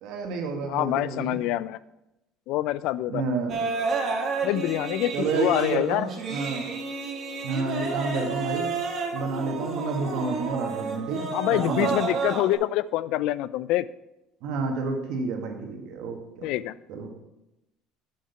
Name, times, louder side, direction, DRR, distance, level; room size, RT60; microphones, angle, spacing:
voice 1, 0.0-1.4 3.1-3.6 5.1-6.7 7.4-8.7 9.1-12.1 14.4-16.6 16.9-17.1, right 4 dB, 70° right, 3 dB, 1.7 m, -30 dB
voice 2, 0.7-1.8 2.5-3.2 4.4-6.1 11.3-13.9 16.4-16.7, left 14 dB, 70° left, 18 dB, 0.3 m, -26 dB
sound 1, 3.5-12.6, right 4 dB, 50° right, 1.6 m, -31 dB
6.8 x 6.5 x 5.8 m, 0.93 s
supercardioid pair, 95°, 0 cm